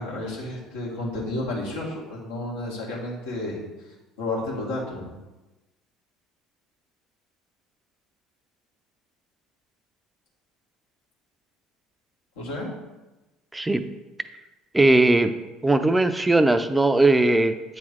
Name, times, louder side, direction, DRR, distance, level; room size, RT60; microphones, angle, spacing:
voice 1, 0.0-3.6 4.2-5.0 12.4-12.7, left 2 dB, 80° left, -4 dB, 1.6 m, -31 dB
voice 2, 13.5-13.8 14.7-15.3 15.6-17.8, right 2 dB, 15° right, 9 dB, 0.5 m, -19 dB
8.4 x 3.2 x 3.6 m, 1.1 s
hypercardioid pair, 70°, 0 cm